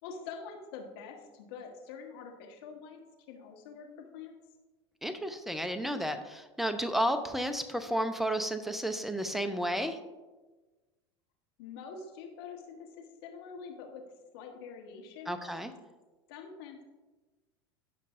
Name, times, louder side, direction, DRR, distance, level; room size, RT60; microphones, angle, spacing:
voice 1, 0.0-3.0 3.3-4.3 11.6-14.0 14.3-15.4 16.3-16.8, left 5 dB, 60° left, 2 dB, 1.4 m, -45 dB
voice 2, 5.0-10.0 15.3-15.7, equal, ahead, 8 dB, 0.7 m, -32 dB
15.5 x 5.3 x 2.6 m, 1.2 s
figure-of-eight pair, 80°, 14 cm